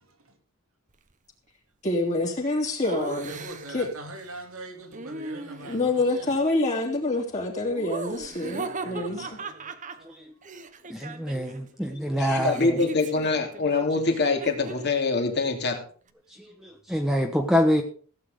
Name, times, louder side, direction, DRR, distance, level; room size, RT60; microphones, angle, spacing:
voice 1, 1.8-3.4 3.7-3.9 5.6-9.4, left 2 dB, 35° left, 3.0 m, -27 dB
Laughter, 2.8-3.9 4.9-5.9 7.7-11.6 11.9-15.0, right 3 dB, 35° right, 1.1 m, -38 dB
voice 2, 3.3-6.3 8.5-9.4, right 2 dB, 80° right, 3.5 m, -42 dB
voice 3, 10.9-12.8 16.6-17.8, equal, ahead, 1.1 m, -25 dB
voice 4, 12.2-15.8, left 3 dB, 50° left, 2.8 m, -24 dB
16.5 x 8.7 x 5.1 m
head